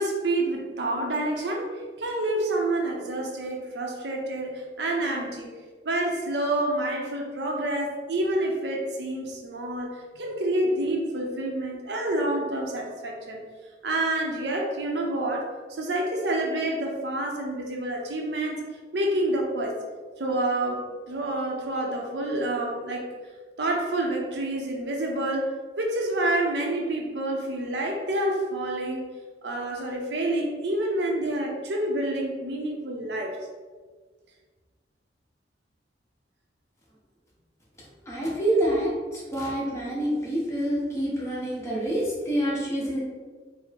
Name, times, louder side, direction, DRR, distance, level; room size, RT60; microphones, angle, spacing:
voice 1, 0.0-1.7 2.0-5.5 5.8-13.4 13.8-18.6 18.9-19.8 20.2-23.1 23.6-29.1 29.4-33.4, right 1 dB, 70° right, 1 dB, 0.6 m, -28 dB
voice 2, 38.1-43.0, right 1 dB, 15° left, -6 dB, 1.1 m, -27 dB
4.7 x 2.0 x 3.4 m, 1.4 s
head